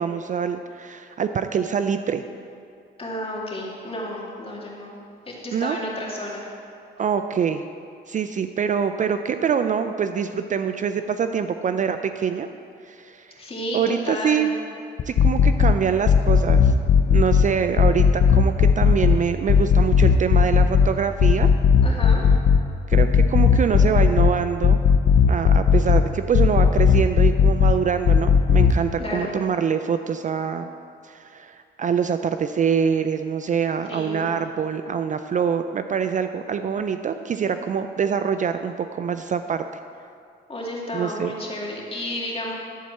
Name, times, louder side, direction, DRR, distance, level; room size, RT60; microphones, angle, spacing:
voice 1, 0.0-2.2 5.5-5.8 7.0-7.6 8.1-12.5 12.9-13.4 13.7-14.5 15.1-16.7 17.1-21.5 22.9-24.8 25.3-30.7 31.0-39.6 40.9-41.3, right 7 dB, 40° right, 9 dB, 0.4 m, -25 dB
voice 2, 3.0-5.0 5.3-6.5 13.4-14.5 21.8-22.2 29.0-29.3 33.9-34.3 40.5-42.5, left 1 dB, 30° left, -3 dB, 2.3 m, -32 dB
sound 1, 15.0-15.7 16.1-17.4 17.8-19.2 19.5-20.9 21.2-22.6 22.9-24.3 24.6-26.0 26.3-27.7 28.1-28.7, left 7 dB, 60° left, 0.7 m, -15 dB
12.0 x 4.2 x 7.6 m, 2.4 s
cardioid pair, 90°, 20 cm